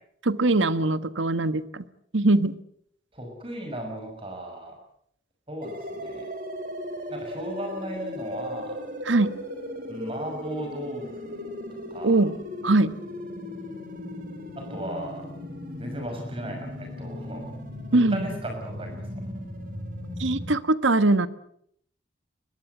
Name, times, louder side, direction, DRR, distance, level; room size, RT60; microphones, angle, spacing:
voice 1, 0.2-1.8 2.1-2.6 9.0-9.4 12.0-12.3 12.6-12.9 17.9-18.3 20.2-21.3, right 2 dB, 85° right, 13 dB, 1.4 m, -22 dB
voice 2, 3.1-4.8 5.5-6.3 7.1-8.8 9.9-11.5 11.9-12.2 14.6-15.3 15.8-17.5 17.9-19.1, right 1 dB, 30° right, 3 dB, 6.1 m, -36 dB
sound 1, 5.6-20.5, equal, 45° right, 4.6 m, -37 dB
22.5 x 21.5 x 8.0 m, 0.69 s
head